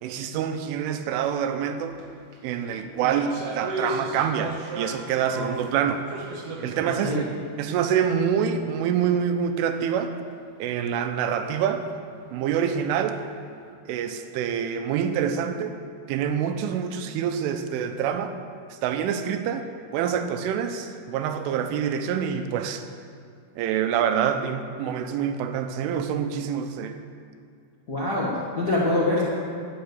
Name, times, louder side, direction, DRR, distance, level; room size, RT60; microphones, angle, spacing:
voice 1, 0.0-2.0 2.4-6.0 6.6-10.1 10.6-11.9 12.3-13.2 13.9-15.8 16.1-18.4 18.7-19.7 19.9-22.9 23.6-27.0, right 8 dB, 90° right, 8 dB, 3.4 m, -26 dB
sound 1, 1.9-2.1 2.3-5.7 6.1-7.0 7.3-7.4 8.1-8.2, right 1 dB, 70° right, 1.4 m, -34 dB
voice 2, 27.9-29.2, left 2 dB, 85° left, -6 dB, 0.8 m, -24 dB
12.5 x 9.8 x 8.1 m, 2.3 s
omnidirectional pair, 5.5 m